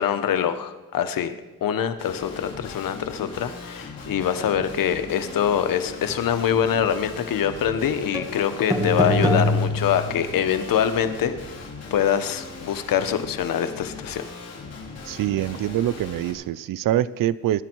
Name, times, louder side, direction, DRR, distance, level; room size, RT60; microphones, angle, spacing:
voice 1, 0.0-1.3 1.6-11.4 11.9-14.2, left 9 dB, 75° left, 9 dB, 1.2 m, -24 dB
Guitar, 2.0-16.3, left 4 dB, 45° left, 4.0 m, -39 dB
sound 1, 8.1-8.3 8.7-10.3, left 1 dB, 10° right, 2.0 m, -22 dB
voice 2, 15.0-17.6, right 12 dB, 70° right, 16 dB, 0.6 m, -24 dB
22.0 x 10.5 x 4.6 m, 1.1 s
cardioid pair, 95°, 34 cm